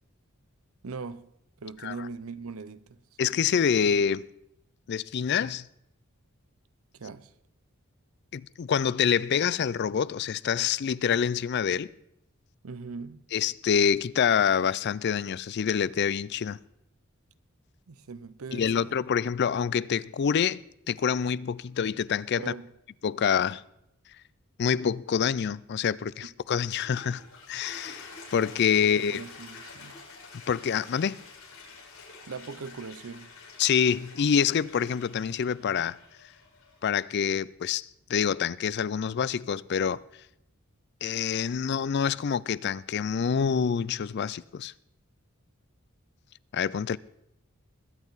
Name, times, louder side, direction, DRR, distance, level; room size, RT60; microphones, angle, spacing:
voice 1, 0.8-1.3 1.6-3.0 6.9-7.3 12.6-13.2 17.9-19.0 22.4-22.7 28.8-30.0 32.3-33.3, right 4 dB, 80° right, 0.7 m, -40 dB
voice 2, 3.2-4.3 4.9-5.7 8.3-11.9 13.3-16.6 18.5-22.5 23.0-23.6 24.6-27.2 27.5-29.2 30.5-31.2 33.6-36.0 36.8-40.0 41.0-44.7 46.5-47.0, left 7 dB, 50° left, 0.4 m, -26 dB
Toilet flush, 26.7-36.9, left 4 dB, 90° left, 6.9 m, -48 dB
21.5 x 9.1 x 4.0 m
head